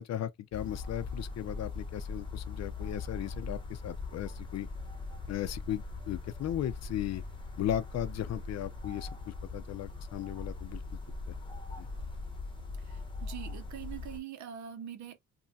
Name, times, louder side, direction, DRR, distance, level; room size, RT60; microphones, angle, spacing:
voice 1, 0.0-4.7 5.3-7.2 7.6-10.8 11.3-11.4 11.8-11.9, left 11 dB, 60° left, 0.5 m, -36 dB
sound 1, 0.5-14.2, left 3 dB, 15° left, 0.9 m, -41 dB
voice 2, 12.8-15.2, right 9 dB, 70° right, 0.7 m, -44 dB
3.1 x 2.2 x 2.6 m
cardioid pair, 90°, 30 cm